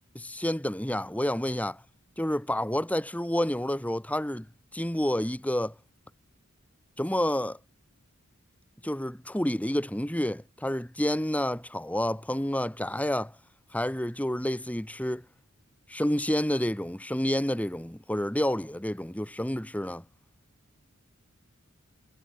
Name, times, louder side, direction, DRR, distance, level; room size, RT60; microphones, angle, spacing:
voice 1, 0.1-1.8 2.2-4.5 4.7-5.7 7.0-7.6 8.8-13.3 13.7-15.2 15.9-20.0, left 1 dB, 5° left, 1.6 m, -29 dB
head